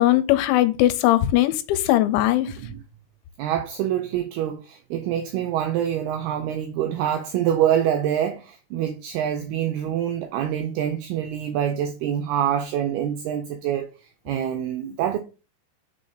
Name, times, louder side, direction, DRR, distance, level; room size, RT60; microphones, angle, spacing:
voice 1, 0.0-2.5, left 14 dB, 85° left, 3.0 m, -19 dB
voice 2, 3.4-13.9 14.3-15.2, right 10 dB, 80° right, 2.3 m, -25 dB
6.3 x 4.0 x 5.0 m
omnidirectional pair, 5.2 m